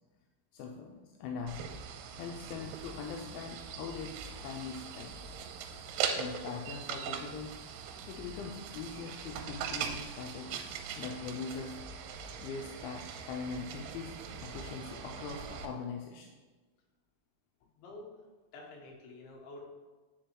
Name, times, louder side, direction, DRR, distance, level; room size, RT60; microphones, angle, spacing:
voice 1, 0.5-1.6 2.2-4.2 4.4-5.2 6.2-7.6 8.1-11.8 12.4-16.4, left 5 dB, 85° left, 2 dB, 2.9 m, -42 dB
sound 1, 1.5-15.7, right 7 dB, 90° right, 3.1 m, -41 dB
voice 2, 17.8-18.1 18.5-19.7, left 2 dB, 70° left, -3 dB, 2.7 m, -48 dB
9.1 x 4.9 x 3.0 m, 1.3 s
omnidirectional pair, 5.5 m